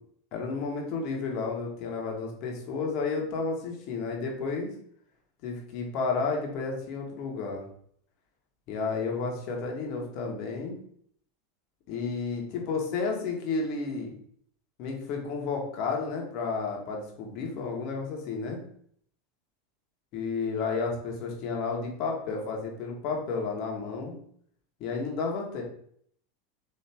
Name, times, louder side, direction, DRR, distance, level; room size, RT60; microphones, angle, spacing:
voice 1, 0.3-4.7 5.4-7.6 8.7-10.8 11.9-14.1 14.8-18.6 20.1-24.1 24.8-25.6, left 4 dB, 55° left, 0 dB, 1.4 m, -32 dB
4.4 x 3.1 x 3.4 m, 0.64 s
hypercardioid pair, 110°, 0 cm